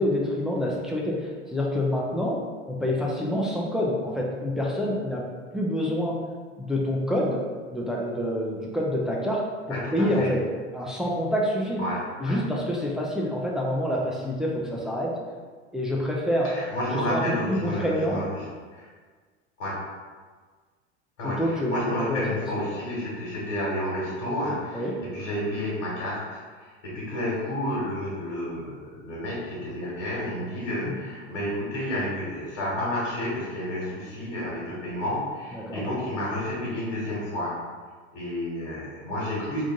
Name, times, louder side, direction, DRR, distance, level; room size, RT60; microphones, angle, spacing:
voice 1, 0.0-5.3 5.5-6.2 6.6-7.4 7.7-10.4 10.7-11.8 12.2-15.2 15.7-16.5 16.9-18.2 21.2-22.2 22.7-22.8 24.7-25.0 30.8-31.0 35.5-35.8, left 1 dB, ahead, -3 dB, 0.4 m, -27 dB
voice 2, 9.7-10.3 11.8-12.3 16.4-18.2 18.7-18.9 19.6-19.8 21.2-37.5 38.1-39.6, left 1 dB, 60° left, -7 dB, 1.5 m, -31 dB
3.5 x 2.5 x 3.7 m, 1.5 s
figure-of-eight pair, 80°, 36 cm